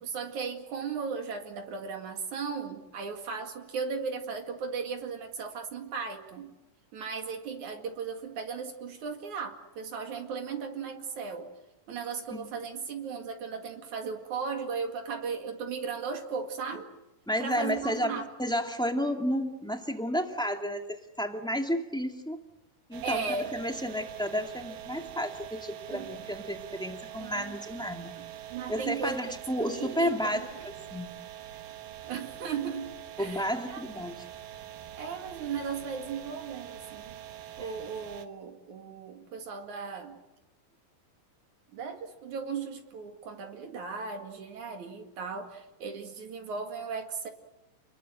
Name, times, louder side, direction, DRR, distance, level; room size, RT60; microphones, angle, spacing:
voice 1, 0.0-6.5 6.9-11.5 11.9-16.9 17.4-18.3 23.0-23.5 25.9-26.1 27.2-27.6 28.2-29.3 29.6-30.7 32.0-33.8 35.0-37.2 37.6-40.2 41.7-47.3, right 5 dB, 65° right, 5 dB, 3.5 m, -36 dB
voice 2, 17.3-22.4 22.9-23.2 23.5-28.1 28.7-30.5 30.9-31.2 33.2-34.2, equal, ahead, 4 dB, 1.5 m, -31 dB
sound 1, 22.9-38.3, right 12 dB, 80° right, 3.0 m, -44 dB
29.5 x 22.0 x 7.8 m, 0.97 s
omnidirectional pair, 3.8 m